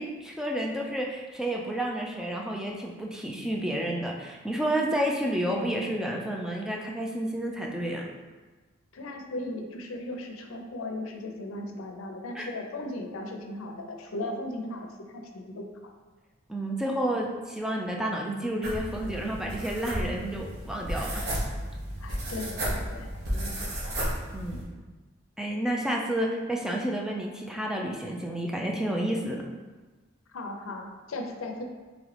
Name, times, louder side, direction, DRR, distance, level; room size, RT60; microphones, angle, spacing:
voice 1, 0.0-8.0 12.4-12.5 16.5-21.2 24.3-24.6 25.4-29.4, right 1 dB, 5° right, -1 dB, 0.4 m, -30 dB
voice 2, 8.9-15.6 22.0-23.7 30.3-31.6, left 2 dB, 80° left, 3 dB, 0.5 m, -37 dB
sound 1, 18.6-24.6, right 1 dB, 50° right, 0.9 m, -33 dB
3.7 x 3.0 x 3.2 m, 1.3 s
head